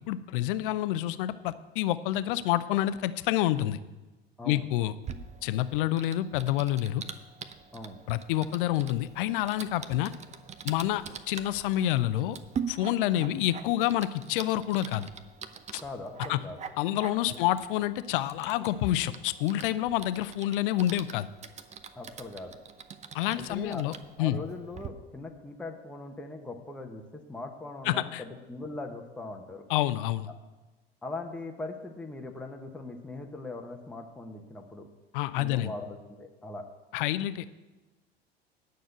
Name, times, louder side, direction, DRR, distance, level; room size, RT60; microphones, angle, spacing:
voice 1, 0.1-3.8 4.4-4.9 5.4-7.0 8.1-10.1 10.6-12.4 12.7-15.1 16.3-16.4 16.8-21.3 23.1-23.9 24.2-24.4 27.9-28.2 29.7-30.3 35.1-35.7 36.9-37.5, left 13 dB, 55° left, 15 dB, 0.6 m, -28 dB
Typing, 5.0-24.9, right 7 dB, 20° right, 0.7 m, -44 dB
voice 2, 15.8-16.6 17.3-17.4 21.9-22.6 23.3-23.8 24.2-29.7 31.0-34.9 35.3-36.7, left 2 dB, 5° left, 1 dB, 1.0 m, -40 dB
9.5 x 6.5 x 7.8 m, 1.1 s
figure-of-eight pair, 80°, 32 cm